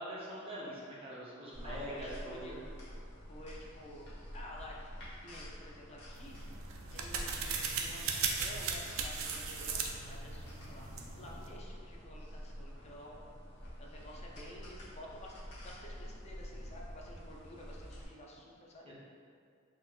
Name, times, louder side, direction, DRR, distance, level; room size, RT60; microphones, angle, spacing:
voice 1, 0.0-2.6 18.8-18.9, right 1 dB, 25° right, -6 dB, 0.6 m, -43 dB
voice 2, 1.3-2.6 3.3-4.9 5.2-6.4 6.9-13.2 13.8-15.3 15.6-18.9, left 1 dB, 30° left, -2 dB, 0.4 m, -51 dB
sound 1, 1.5-18.0, equal, 55° left, 1.0 m, -48 dB
sound 2, 6.2-11.5, right 5 dB, 70° right, 0.3 m, -38 dB
4.1 x 2.7 x 2.3 m, 2.2 s
head